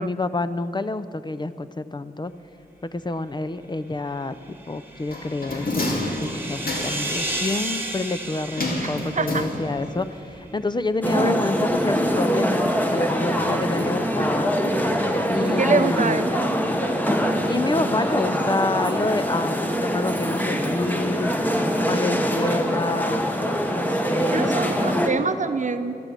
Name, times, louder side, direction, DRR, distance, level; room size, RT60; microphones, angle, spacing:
voice 1, 0.0-2.3 2.8-14.5 15.3-16.3 17.5-21.3 21.9-23.3 23.8-24.7, left 2 dB, 30° left, 12 dB, 0.5 m, -28 dB
sound 1, 4.5-10.1, right 1 dB, 15° right, 1.8 m, -33 dB
sound 2, 5.1-7.2 8.6-10.0 10.3-10.4, left 1 dB, 70° left, 2.4 m, -28 dB
voice 2, 8.8-9.4 11.1-11.4 15.6-16.3 24.3-26.0, right 4 dB, 55° right, 9 dB, 0.8 m, -25 dB
sound 3, 11.0-25.1, equal, 10° left, 1.3 m, -23 dB
13.5 x 12.0 x 7.5 m, 2.6 s
wide cardioid pair, 80°, 15 cm